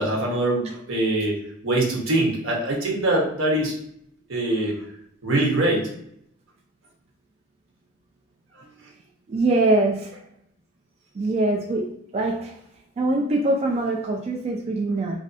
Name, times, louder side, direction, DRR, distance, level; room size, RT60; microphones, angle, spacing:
voice 1, 0.0-1.4 1.6-3.7 4.3-4.7 5.2-5.9, right 1 dB, 70° right, -2 dB, 1.0 m, -23 dB
voice 2, 9.3-10.1 11.2-11.9 12.1-12.5 13.0-15.2, right 2 dB, 30° right, 0 dB, 0.3 m, -23 dB
3.1 x 2.6 x 2.5 m, 0.72 s
head